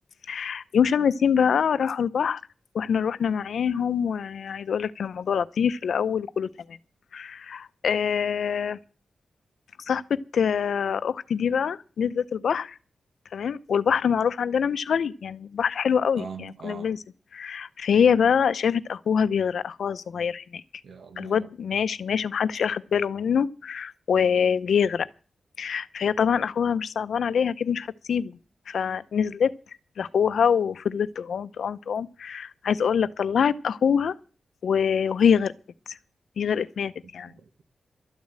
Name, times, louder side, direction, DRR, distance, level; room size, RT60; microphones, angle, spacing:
voice 1, 0.3-2.4 2.7-6.8 7.1-8.8 9.9-12.7 13.3-17.0 17.3-20.6 21.2-25.1 25.6-28.4 28.7-29.5 30.0-34.1 34.6-35.5 35.9-36.0 36.4-37.3, left 7 dB, 85° left, 0.6 m, -25 dB
voice 2, 16.1-16.9 20.8-21.5 37.2-37.6, right 6 dB, 75° right, 1.6 m, -41 dB
13.0 x 7.2 x 8.8 m
wide cardioid pair, 170°, 0 cm